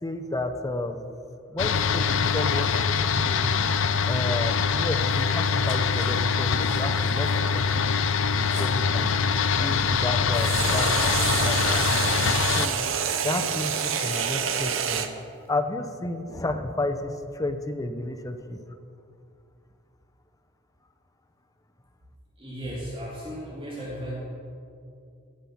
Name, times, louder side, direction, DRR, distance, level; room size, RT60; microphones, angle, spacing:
voice 1, 0.0-1.0 1.5-3.5 4.1-7.9 8.3-11.8 12.5-12.9 13.2-15.1 15.5-18.6, left 2 dB, 15° left, 7 dB, 0.6 m, -32 dB
sound 1, 1.6-12.7, left 5 dB, 70° left, 0.5 m, -24 dB
sound 2, 4.1-9.2 10.3-15.1, right 7 dB, 80° right, 0.7 m, -28 dB
Cutlery silverware, 5.5-6.1 6.6-7.1 7.8-8.7 9.6-11.3 11.6-13.1 13.4-14.3, right 3 dB, 60° right, 2.8 m, -45 dB
voice 2, 22.4-24.1, equal, 30° right, -7 dB, 2.2 m, -35 dB
15.0 x 5.5 x 5.8 m, 2.5 s
head